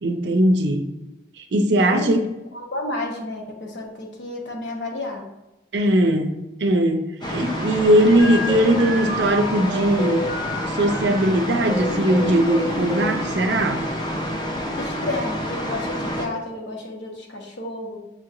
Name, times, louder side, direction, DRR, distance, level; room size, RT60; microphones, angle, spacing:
voice 1, 0.0-0.9 1.4-2.3 5.7-10.3 10.7-13.8, right 1 dB, 65° right, 7 dB, 0.5 m, -20 dB
voice 2, 1.8-2.1 2.5-5.3 14.7-18.0, left 2 dB, 70° left, 1 dB, 0.9 m, -31 dB
sound 1, 7.2-16.3, equal, 25° left, 0.5 m, -28 dB
sound 2, 8.2-11.2 11.7-13.3, equal, 40° left, 0.9 m, -30 dB
6.7 x 2.9 x 2.5 m, 0.98 s
head